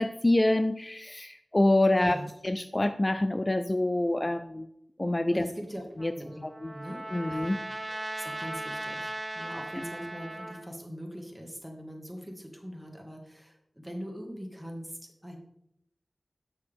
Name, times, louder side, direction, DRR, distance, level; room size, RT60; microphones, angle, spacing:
voice 1, 0.0-2.2 2.4-4.7 5.0-5.5 6.0-6.1 6.4-6.7 7.1-7.6, left 1 dB, 35° left, 9 dB, 0.4 m, -26 dB
voice 2, 1.9-2.3 5.3-5.9 6.1-6.4 6.7-15.4, equal, 10° right, 1 dB, 1.8 m, -41 dB
Trumpet, 6.0-10.7, right 1 dB, 30° right, 1.0 m, -38 dB
6.7 x 6.3 x 3.6 m, 0.77 s
cardioid pair, 40°, 0 cm